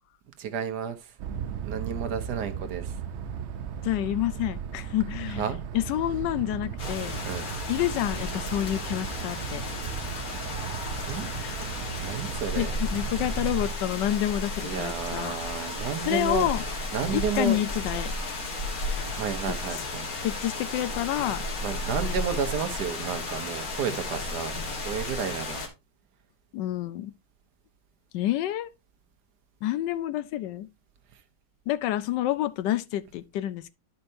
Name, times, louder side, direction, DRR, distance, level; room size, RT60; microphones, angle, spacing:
voice 1, 0.4-1.1 1.6-3.0 5.3-5.6 7.2-7.5 11.0-11.3 12.0-12.7 14.6-16.5 16.9-17.6 18.3-18.4 19.1-20.1 21.6-24.6 24.8-25.6, right 7 dB, 70° right, 1.4 m, -32 dB
sound 1, 1.2-13.7, right 8 dB, 90° right, 0.6 m, -36 dB
voice 2, 3.8-5.5 5.7-7.2 7.7-9.6 11.2-11.7 12.6-15.3 16.1-16.6 17.1-18.1 20.2-21.4 26.5-27.1 28.1-28.7 29.6-30.7 31.7-33.7, left 13 dB, 80° left, 1.2 m, -28 dB
sound 2, 6.8-25.7, left 2 dB, 55° left, 1.8 m, -33 dB
10.5 x 5.5 x 2.6 m
omnidirectional pair, 1.9 m